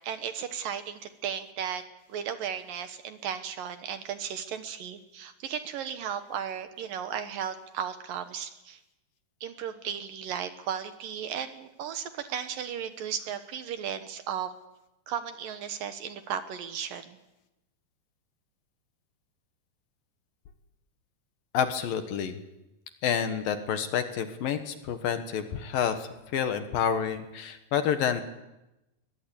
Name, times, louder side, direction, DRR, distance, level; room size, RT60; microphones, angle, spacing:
voice 1, 0.0-1.8 2.1-8.8 9.4-14.5 15.1-17.2, right 8 dB, 65° right, 9 dB, 2.6 m, -35 dB
voice 2, 21.5-22.4 23.0-28.2, left 8 dB, 65° left, 8 dB, 2.9 m, -29 dB
22.5 x 20.5 x 8.6 m, 0.95 s
omnidirectional pair, 4.7 m